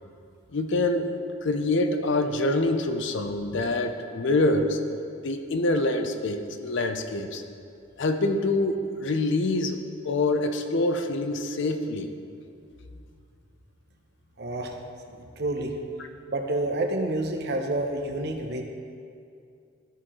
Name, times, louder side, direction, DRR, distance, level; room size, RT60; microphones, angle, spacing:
voice 1, 0.5-1.2 1.4-4.8 5.2-7.4 8.0-12.1, left 2 dB, 65° left, 7 dB, 0.6 m, -25 dB
voice 2, 14.4-14.8 15.1-15.8 16.3-18.6, right 2 dB, 55° right, 3 dB, 0.8 m, -29 dB
13.5 x 4.6 x 3.7 m, 2.4 s
head